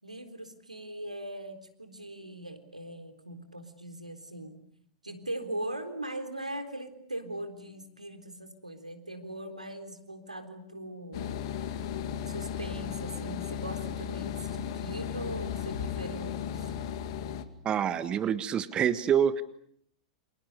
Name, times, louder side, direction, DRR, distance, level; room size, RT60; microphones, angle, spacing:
voice 1, 0.0-4.6 5.0-11.4 12.3-16.7, right 1 dB, 85° right, 8 dB, 3.8 m, -40 dB
sound 1, 11.1-17.4, left 8 dB, 50° left, 2.4 m, -35 dB
voice 2, 17.6-19.4, right 8 dB, 25° right, 13 dB, 1.5 m, -26 dB
29.5 x 27.5 x 6.7 m, 0.68 s
figure-of-eight pair, 95°, 4 cm